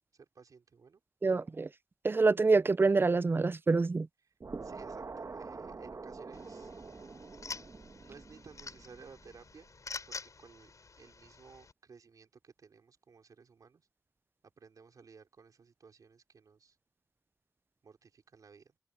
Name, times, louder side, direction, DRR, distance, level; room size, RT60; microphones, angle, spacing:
voice 1, 0.1-1.0 4.3-4.4 4.6-6.7 8.0-9.7 10.1-13.8 14.6-16.8 17.8-18.7, right 5 dB, 80° right, 4.0 m, -56 dB
voice 2, 1.2-1.7 2.0-4.1 4.5-4.6, right 3 dB, 40° right, 0.4 m, -26 dB
sound 1, 4.4-9.7, right 4 dB, 55° right, 1.2 m, -46 dB
sound 2, 6.3-11.7, left 4 dB, 65° left, 5.9 m, -47 dB
cardioid pair, 50°, 6 cm